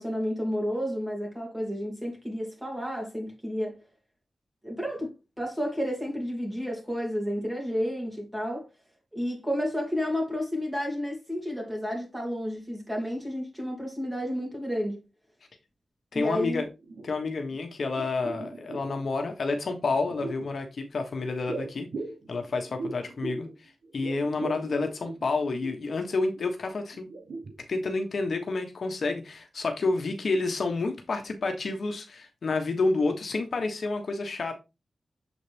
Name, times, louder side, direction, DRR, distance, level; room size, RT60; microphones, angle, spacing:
voice 1, 0.0-3.8 4.6-8.7 9.1-15.0 16.1-16.6, equal, 10° right, 2.5 m, -31 dB
voice 2, 16.1-16.6 17.0-21.9 22.3-27.1 27.7-34.5, left 3 dB, 60° left, 1.1 m, -29 dB
sound 1, 16.8-17.6 17.9-19.1 19.9-20.5 21.5-23.6 23.8-25.9 26.3-26.5 26.9-27.9 28.2-28.3, right 3 dB, 75° right, 1.1 m, -39 dB
7.1 x 4.1 x 3.4 m
wide cardioid pair, 100°, 0 cm